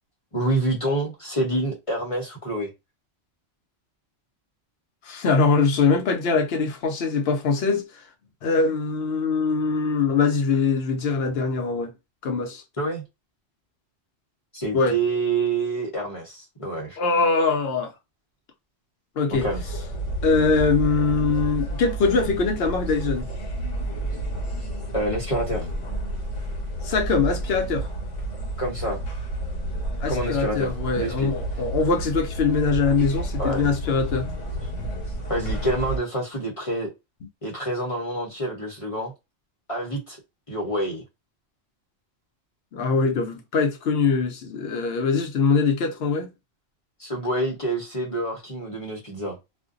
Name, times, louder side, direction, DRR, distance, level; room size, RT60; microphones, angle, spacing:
voice 1, 0.3-2.7 12.8-13.0 14.5-17.0 19.3-19.6 24.9-25.7 28.6-29.0 30.1-30.7 30.9-31.3 33.4-33.6 34.6-34.7 35.3-36.9 37.4-39.1 39.7-40.2 40.5-41.0 47.0-49.4, right 2 dB, 30° left, 0.8 m, -27 dB
voice 2, 5.0-7.9 8.4-11.9 12.2-12.6 14.7-15.0 17.0-17.9 19.2-19.4 20.2-23.3 26.8-27.9 30.0-34.3 42.7-46.3, left 4 dB, 65° left, 0.8 m, -22 dB
sound 1, 19.3-36.0, right 1 dB, 80° left, 1.2 m, -30 dB
2.5 x 2.2 x 2.4 m
omnidirectional pair, 1.2 m